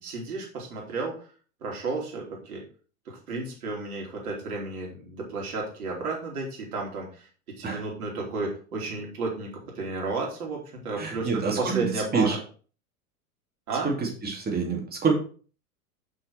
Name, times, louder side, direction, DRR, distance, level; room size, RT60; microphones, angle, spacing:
voice 1, 0.0-1.3 1.6-2.6 3.0-9.5 9.7-12.4 13.7-13.9, right 3 dB, 70° right, -1 dB, 3.2 m, -32 dB
voice 2, 11.0-11.7 12.1-12.4 13.8-15.1, right 5 dB, 20° right, 0 dB, 2.6 m, -26 dB
6.1 x 6.0 x 4.5 m, 0.40 s
figure-of-eight pair, 90°, 45 cm